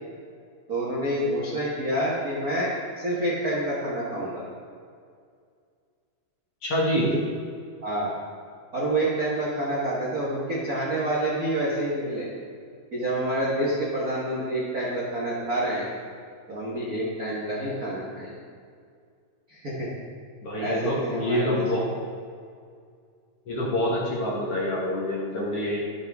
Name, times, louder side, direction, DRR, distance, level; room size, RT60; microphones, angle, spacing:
voice 1, 0.7-4.4 7.1-7.2 7.8-8.1 8.7-12.3 12.9-15.9 16.5-18.3 19.5-19.9 20.6-21.6, right 1 dB, 80° right, -6 dB, 0.8 m, -28 dB
voice 2, 6.6-7.1 20.4-21.9 23.5-25.8, equal, 50° left, -5 dB, 1.9 m, -26 dB
12.0 x 7.4 x 3.6 m, 2.2 s
omnidirectional pair, 4.2 m